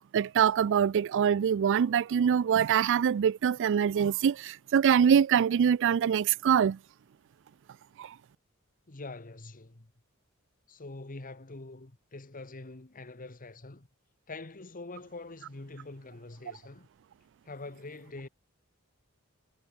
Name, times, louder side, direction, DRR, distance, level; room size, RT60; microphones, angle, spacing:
voice 1, 0.1-6.8 8.0-8.1, right 8 dB, 60° right, 0.3 m, -24 dB
voice 2, 8.9-9.9 10.7-13.9 14.3-16.9 17.4-18.3, left 2 dB, 40° left, 1.5 m, -44 dB
head